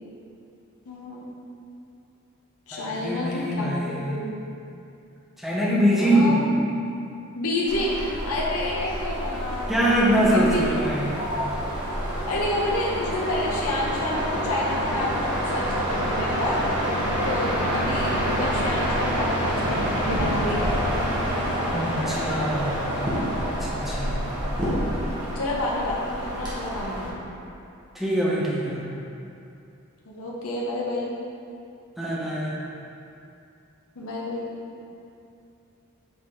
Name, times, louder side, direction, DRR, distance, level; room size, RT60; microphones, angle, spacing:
voice 1, 0.9-1.2 2.7-3.7 4.0-4.4 6.0-6.4 7.3-9.7 10.3-10.6 11.2-11.4 12.3-16.6 17.2-20.9 24.6-27.3 30.1-31.1 34.0-34.5, left 1 dB, 75° left, -4 dB, 0.9 m, -29 dB
voice 2, 2.7-4.1 5.4-6.4 9.7-11.2 21.7-22.9 23.6-24.2 27.9-28.8 32.0-32.6, equal, ahead, -7 dB, 1.0 m, -23 dB
sound 1, 7.7-27.1, equal, 20° right, 1.4 m, -27 dB
7.8 x 4.0 x 3.7 m, 2.6 s
head